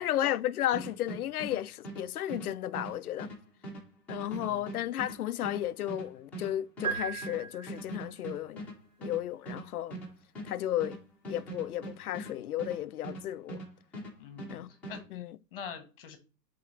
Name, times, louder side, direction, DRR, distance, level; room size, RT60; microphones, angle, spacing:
voice 1, 0.0-3.3 4.1-8.6 9.0-10.0 10.4-11.0 11.3-13.6 14.5-14.7 15.1-15.4, left 12 dB, 60° left, 0.6 m, -33 dB
sound 1, 0.7-13.7 13.9-15.0, right 2 dB, 5° left, 1.1 m, -42 dB
voice 2, 4.3-4.6 14.2-15.2 15.5-16.2, left 7 dB, 35° left, 1.4 m, -45 dB
sound 2, 6.8-8.2, right 6 dB, 55° right, 1.7 m, -36 dB
9.5 x 4.3 x 3.2 m
hypercardioid pair, 170°, 50 cm